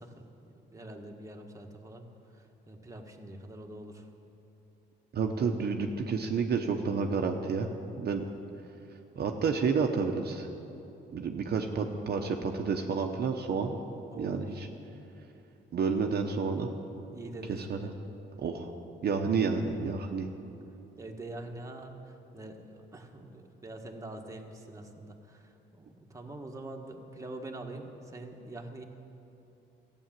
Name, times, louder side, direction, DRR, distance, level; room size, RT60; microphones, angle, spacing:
voice 1, 0.0-2.1 2.3-4.1 14.1-14.6 17.1-17.9 21.0-28.8, right 2 dB, 15° right, 1 dB, 1.4 m, -44 dB
voice 2, 5.1-7.7 8.0-8.2 9.2-10.5 11.1-13.8 14.2-14.7 15.7-16.7 17.5-17.9 18.4-18.7 19.0-20.3, right 5 dB, 55° right, 3 dB, 0.9 m, -30 dB
14.0 x 8.8 x 7.5 m, 2.9 s
cardioid pair, 90°, 20 cm